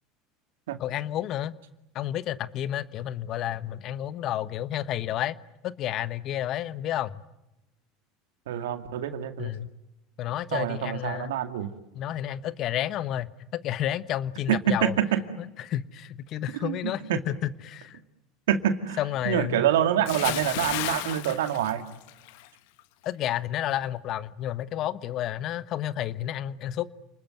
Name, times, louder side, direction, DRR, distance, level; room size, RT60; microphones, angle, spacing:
voice 1, 0.8-1.6 1.9-5.4 5.6-7.2 9.4-9.7 10.2-11.3 11.9-14.9 15.6-17.0 17.3-18.0 19.0-19.7 23.0-26.9, left 12 dB, 50° left, 15 dB, 1.2 m, -31 dB
voice 2, 8.5-9.5 10.5-11.7 14.5-15.2 16.5-16.8 17.1-17.2 18.5-19.0 19.2-21.8, right 10 dB, 80° right, 8 dB, 2.2 m, -26 dB
Bathtub (filling or washing) / Splash splatter, 20.0-22.5 22.8-23.1, left 16 dB, 70° left, 1.2 m, -33 dB
29.5 x 20.5 x 9.3 m, 0.95 s
hypercardioid pair, 85°, 0 cm